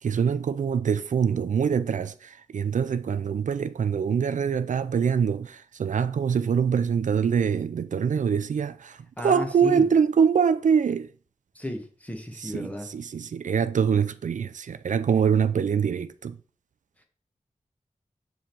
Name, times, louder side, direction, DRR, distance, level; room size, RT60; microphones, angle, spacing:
voice 1, 0.0-11.1 12.4-16.4, right 7 dB, 80° right, 0.4 m, -24 dB
voice 2, 9.2-9.8 11.5-12.9, left 1 dB, 10° left, 1.2 m, -34 dB
6.8 x 3.7 x 4.5 m
wide cardioid pair, 95°, 13 cm